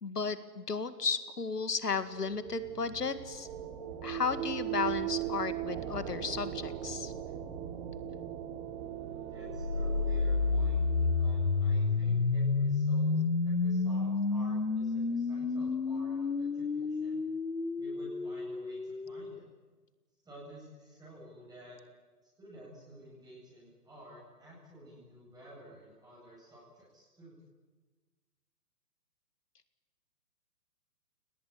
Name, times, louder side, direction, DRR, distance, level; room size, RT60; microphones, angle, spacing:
voice 1, 0.0-3.5 4.0-7.1, left 5 dB, 75° left, 13 dB, 2.1 m, -34 dB
sound 1, 1.7-12.2, right 11 dB, 30° right, 3.0 m, -39 dB
voice 2, 9.3-10.8 11.2-13.2 13.4-17.2 17.8-19.4 20.2-21.8 22.4-27.4, equal, 10° right, -5 dB, 7.7 m, -52 dB
sound 2, 9.4-19.4, left 4 dB, 90° left, 1.3 m, -30 dB
29.5 x 19.0 x 9.7 m, 1.3 s
figure-of-eight pair, 125°, 48 cm